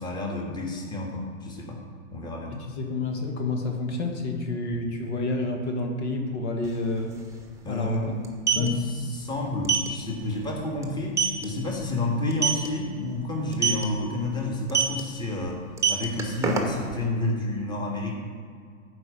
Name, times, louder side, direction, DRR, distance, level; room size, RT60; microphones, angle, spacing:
voice 1, 0.0-1.8 2.1-2.5 7.6-8.2 8.5-15.6 15.9-18.2, left 2 dB, 10° left, -1 dB, 1.6 m, -30 dB
voice 2, 2.5-7.2 7.7-8.2 8.5-8.7, left 2 dB, 55° left, 3 dB, 1.5 m, -29 dB
sound 1, 6.6-6.7 7.0-7.2 8.2-8.7 9.6-9.9 10.3-10.5 10.8-10.9 11.2-11.4 12.3-12.7 13.5-13.8 14.7-15.0 15.6-16.9, right 6 dB, 5° right, 1.1 m, -23 dB
9.5 x 4.9 x 6.6 m, 2.1 s
hypercardioid pair, 115°, 41 cm